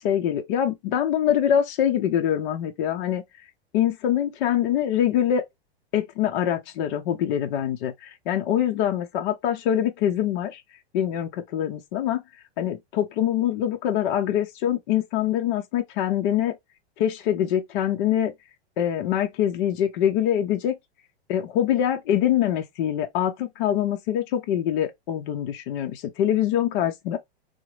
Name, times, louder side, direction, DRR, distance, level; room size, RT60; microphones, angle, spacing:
voice 1, 0.0-3.2 3.7-5.4 5.9-10.6 10.9-12.2 12.6-16.6 17.0-18.3 18.8-20.8 21.3-27.2, left 10 dB, 50° left, 0.6 m, -24 dB
3.7 x 2.1 x 3.0 m
hypercardioid pair, 120°, 33 cm